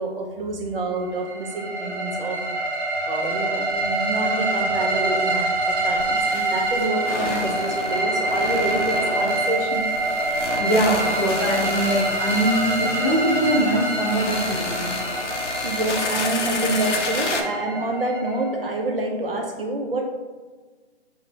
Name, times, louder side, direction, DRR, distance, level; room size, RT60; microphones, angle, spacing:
voice 1, 0.0-2.4 3.0-9.9 15.6-20.1, right 2 dB, 55° right, 3 dB, 0.5 m, -27 dB
sound 1, 1.0-18.9, right 2 dB, 10° right, 1.2 m, -26 dB
sound 2, 3.7-3.8 4.1-4.2 5.8-17.4, left 3 dB, 85° left, 0.6 m, -31 dB
voice 2, 10.5-15.0, right 1 dB, 5° left, -20 dB, 0.5 m, -22 dB
5.5 x 2.1 x 2.6 m, 1.3 s
figure-of-eight pair, 155°, 35 cm